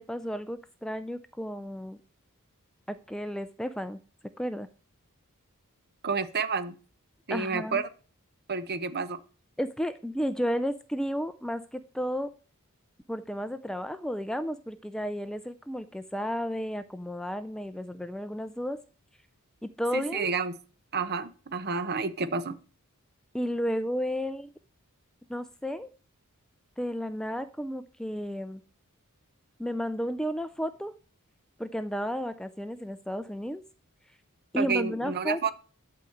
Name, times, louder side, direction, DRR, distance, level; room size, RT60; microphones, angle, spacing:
voice 1, 0.0-2.0 2.9-4.0 4.4-4.7 7.3-7.8 9.6-12.3 13.1-18.8 19.6-20.3 23.3-24.5 25.3-25.9 26.8-28.6 29.6-30.9 31.6-33.6 34.5-35.5, equal, 5° left, 11 dB, 0.4 m, -32 dB
voice 2, 6.0-6.7 7.3-7.9 8.5-9.2 19.9-20.6 20.9-22.6 34.6-35.5, right 5 dB, 45° right, 13 dB, 0.9 m, -30 dB
11.5 x 4.9 x 7.9 m, 0.38 s
head